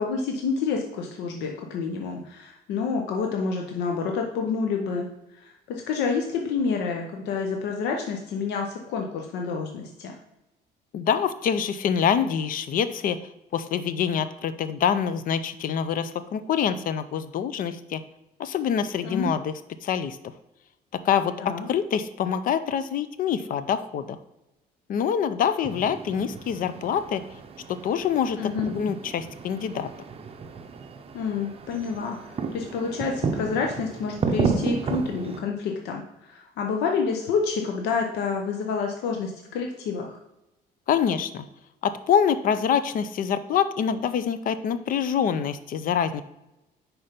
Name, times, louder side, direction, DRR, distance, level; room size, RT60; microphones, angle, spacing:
voice 1, 0.0-5.1 5.3-10.2 19.0-19.3 21.4-21.7 28.4-28.7 31.1-40.2, left 5 dB, 85° left, 2 dB, 0.8 m, -28 dB
voice 2, 10.9-13.2 13.5-18.0 18.4-19.5 19.8-20.2 21.0-24.2 24.9-27.2 27.7-28.4 28.7-29.9 40.9-41.4 41.8-46.2, left 8 dB, 55° left, 12 dB, 0.5 m, -25 dB
sound 1, 25.6-35.4, right 5 dB, 35° right, 0.6 m, -32 dB
5.6 x 4.3 x 5.1 m, 0.91 s
cardioid pair, 110°, 17 cm